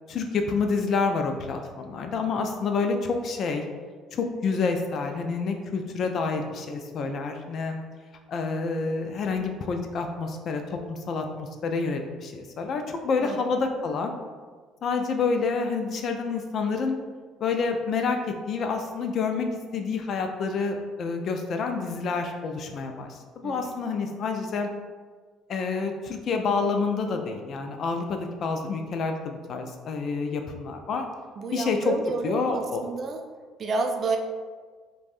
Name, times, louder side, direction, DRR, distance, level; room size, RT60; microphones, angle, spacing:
voice 1, 0.1-3.6 4.1-7.8 8.3-14.1 14.8-16.9 17.4-18.2 18.5-24.7 25.5-31.1 31.5-31.9 32.2-32.8, left 4 dB, 55° left, 5 dB, 0.3 m, -28 dB
voice 2, 31.4-33.2 33.6-34.2, right 4 dB, 45° right, 4 dB, 0.3 m, -30 dB
3.2 x 2.2 x 2.5 m, 1.5 s
supercardioid pair, 80°, 0 cm